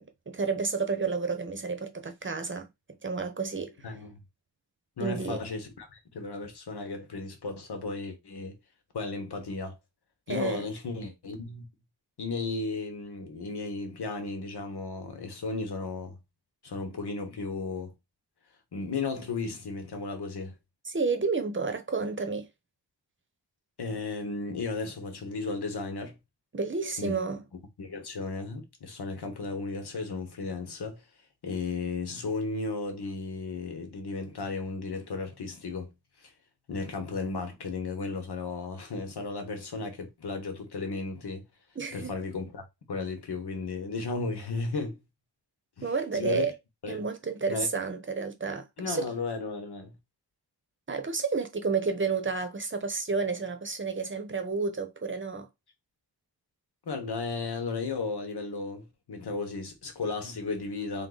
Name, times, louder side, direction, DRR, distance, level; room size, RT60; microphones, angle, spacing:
voice 1, 0.0-2.7 3.0-3.8 5.0-5.4 10.3-10.7 20.8-22.5 26.5-27.4 41.8-42.1 45.8-46.5 46.9-49.0 50.9-55.5, right 4 dB, 30° right, 0.9 m, -31 dB
voice 2, 3.8-4.2 5.0-8.6 8.9-9.8 10.3-11.6 12.2-16.2 16.6-17.9 18.7-20.5 23.8-26.2 27.0-27.2 27.8-31.0 31.4-35.9 36.2-36.3 36.7-41.5 41.9-45.0 45.8-46.5 46.8-47.0 47.5-47.7 48.8-50.0 56.8-61.1, left 3 dB, 70° left, 1.3 m, -34 dB
3.8 x 2.7 x 4.0 m
wide cardioid pair, 110°, 41 cm